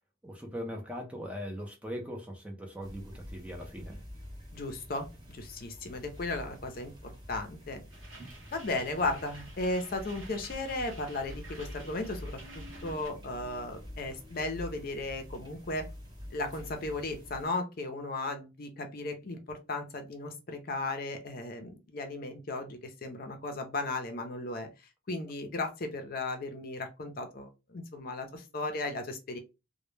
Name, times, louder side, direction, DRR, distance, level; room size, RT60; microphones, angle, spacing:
voice 1, 0.2-4.0, equal, 5° right, 0.4 m, -40 dB
sound 1, 2.8-17.5, equal, 20° right, 0.8 m, -47 dB
voice 2, 4.5-7.8 8.5-15.9 16.3-24.7 25.1-29.4, left 2 dB, 45° left, 0.5 m, -36 dB
sound 2, 7.9-13.1, right 2 dB, 75° right, 0.8 m, -51 dB
2.1 x 2.0 x 3.1 m
head